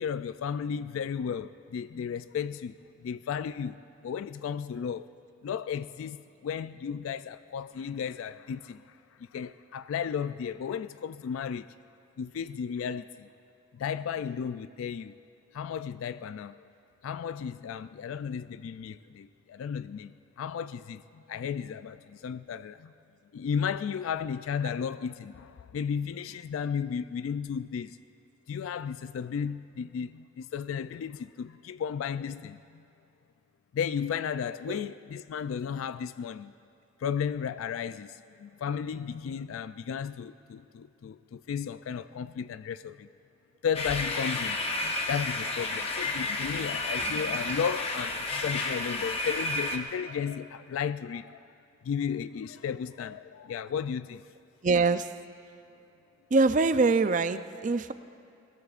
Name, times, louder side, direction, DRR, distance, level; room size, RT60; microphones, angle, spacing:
voice 1, 0.0-5.1 5.4-11.7 12.2-13.3 13.7-15.1 15.5-16.7 17.0-22.9 23.3-28.0 28.5-32.8 33.7-36.5 37.0-43.1 43.6-51.5 51.8-54.3, left 7 dB, 85° left, 0.3 m, -34 dB
sound 1, 43.7-49.8, left 2 dB, 30° left, 0.9 m, -31 dB
voice 2, 54.6-55.1 56.3-57.9, right 3 dB, 40° right, 0.4 m, -24 dB
21.0 x 21.0 x 2.5 m
head